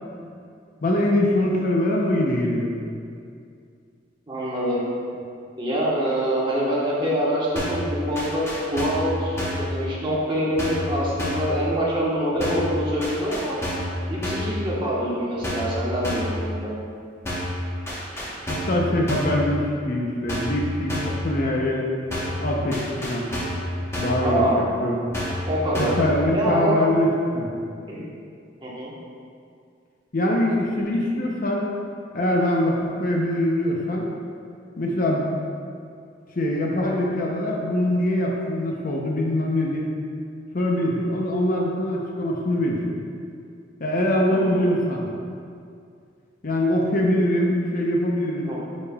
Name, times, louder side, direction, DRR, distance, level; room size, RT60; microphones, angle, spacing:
voice 1, 0.8-2.7 18.5-21.9 22.4-23.3 24.0-24.4 24.8-25.0 25.8-27.1 27.3-27.5 30.1-31.7 32.1-34.0 34.8-35.3 36.3-39.9 40.5-42.8 43.8-45.0 46.4-48.5, left 1 dB, 45° left, -1 dB, 0.7 m, -23 dB
voice 2, 4.3-4.8 5.6-8.4 8.7-13.6 14.1-16.7 24.2-24.6 25.5-25.9 26.3-26.8 27.9-28.1 28.6-28.9 44.2-44.6 48.5-48.6, equal, 25° right, -6 dB, 1.2 m, -25 dB
sound 1, 7.6-7.9 8.2-9.1 9.4-9.7 10.6-10.9 11.2-11.5 12.4-12.7 13.0-13.9 14.2-14.5 15.4-15.8 16.0-16.4 17.3-17.6 17.9-18.8 19.1-19.4 20.3-20.6 20.9-21.2 22.1-22.4 22.7-23.6 23.9-24.3 25.1-25.5 25.7-26.1, equal, 15° left, 1.1 m, -29 dB
9.8 x 5.2 x 2.3 m, 2.4 s
head